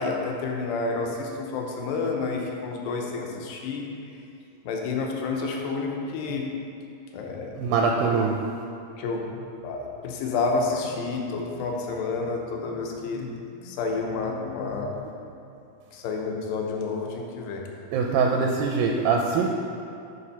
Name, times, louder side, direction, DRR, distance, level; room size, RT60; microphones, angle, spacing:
voice 1, 0.0-3.9 4.6-6.4 7.1-7.6 9.0-15.0 15.9-17.6, left 4 dB, 80° left, 1 dB, 2.5 m, -30 dB
voice 2, 7.6-8.3 17.9-19.5, right 5 dB, 85° right, 1 dB, 2.2 m, -23 dB
6.7 x 4.9 x 5.6 m, 2.7 s
omnidirectional pair, 4.1 m